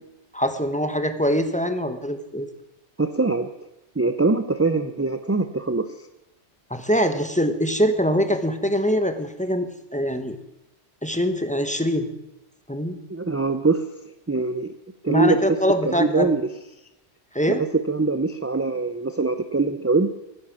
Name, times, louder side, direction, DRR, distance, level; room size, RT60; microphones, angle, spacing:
voice 1, 0.3-2.5 6.7-10.4 11.0-12.1 12.7-13.0 15.1-16.4 17.3-17.6, equal, 5° left, 8 dB, 1.1 m, -23 dB
voice 2, 3.0-3.5 4.0-5.9 13.1-13.9 14.3-14.7 15.0-15.4 15.9-16.4 17.7-20.1, right 3 dB, 20° right, 9 dB, 0.5 m, -22 dB
16.5 x 9.9 x 7.3 m, 0.93 s
omnidirectional pair, 1.2 m